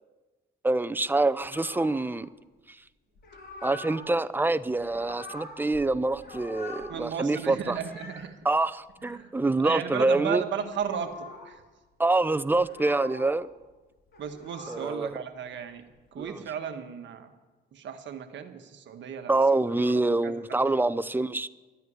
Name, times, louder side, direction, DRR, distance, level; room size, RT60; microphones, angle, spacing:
voice 1, 0.6-2.3 3.6-7.8 8.4-10.4 12.0-13.5 14.7-15.1 16.2-16.4 19.3-21.5, right 2 dB, 10° right, 15 dB, 0.5 m, -26 dB
sound 1, 1.5-2.1 3.1-4.1 4.7-5.9 6.1-6.9 7.4-8.3 8.9-9.2 10.7-11.5 12.5-13.3 14.0-15.1 15.9-16.3, left 2 dB, 55° left, 4.7 m, -44 dB
voice 2, 6.9-8.3 9.0-9.3 9.6-11.6 14.2-15.8 16.1-17.3 17.7-19.3 19.7-19.9 20.2-20.8, right 8 dB, 70° right, 7 dB, 1.4 m, -35 dB
12.5 x 9.3 x 9.4 m, 1.2 s
cardioid pair, 90°, 20 cm